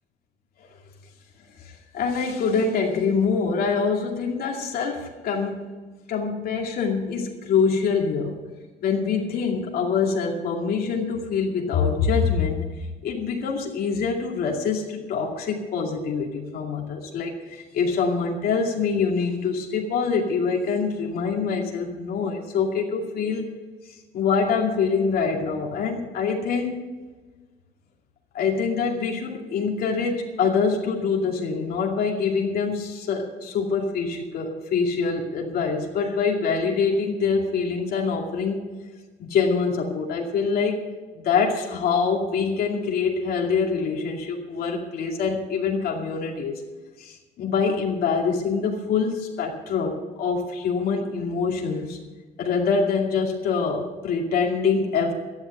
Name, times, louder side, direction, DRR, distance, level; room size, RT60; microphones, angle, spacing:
voice 1, 1.6-5.6 6.1-8.4 8.8-23.5 23.9-26.8 28.3-38.7 39.2-40.9 41.2-46.6 47.0-52.0 52.4-55.1, left 5 dB, 65° left, 0 dB, 2.4 m, -25 dB
12.5 x 11.0 x 6.7 m, 1.3 s
cardioid pair, 110°, 17 cm